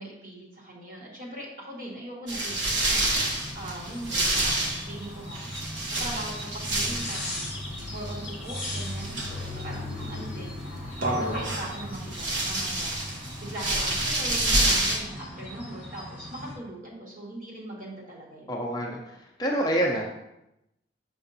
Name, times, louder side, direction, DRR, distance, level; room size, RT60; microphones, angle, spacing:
voice 1, 0.0-5.5 5.8-18.5, right 1 dB, 45° right, -4 dB, 1.7 m, -40 dB
sound 1, 2.3-15.0, right 1 dB, 90° right, 1.1 m, -29 dB
sound 2, 3.1-16.6, left 1 dB, 5° right, 1.1 m, -40 dB
voice 2, 18.5-20.0, right 1 dB, 20° left, 0 dB, 0.6 m, -27 dB
6.7 x 5.9 x 2.7 m, 0.87 s
head